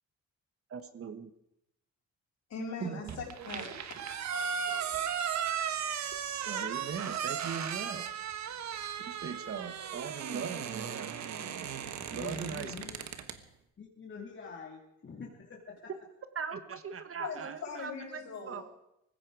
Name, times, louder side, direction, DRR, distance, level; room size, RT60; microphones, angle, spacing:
voice 1, 0.7-1.3 2.8-3.0 6.4-8.1 9.1-11.1 12.1-12.7 16.3-18.6, right 6 dB, 45° right, 10 dB, 1.4 m, -39 dB
voice 2, 2.5-5.0 17.2-18.6, left 4 dB, 60° left, -1 dB, 6.7 m, -42 dB
sound 1, 3.1-13.4, right 8 dB, 65° right, 1.4 m, -36 dB
voice 3, 12.1-13.0 13.8-15.9, left 5 dB, 40° left, -1 dB, 2.7 m, -45 dB
19.0 x 15.5 x 4.8 m, 0.82 s
cardioid pair, 90°, 30 cm